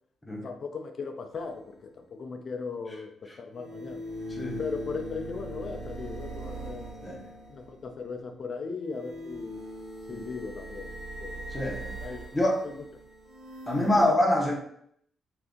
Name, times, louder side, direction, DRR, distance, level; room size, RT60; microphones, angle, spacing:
voice 1, 0.4-4.0 4.6-6.9 7.5-9.6 10.1-11.5 12.0-12.2 12.6-12.8 14.0-14.1, left 4 dB, 50° left, 5 dB, 0.4 m, -38 dB
sound 1, 1.3-1.4 3.5-8.0 8.8-14.1, right 1 dB, 55° right, 0.9 m, -40 dB
voice 2, 11.5-12.0 12.3-12.6 13.7-14.6, left 1 dB, 15° left, -1 dB, 0.7 m, -25 dB
2.7 x 2.5 x 3.5 m, 0.68 s
cardioid pair, 125°, 0 cm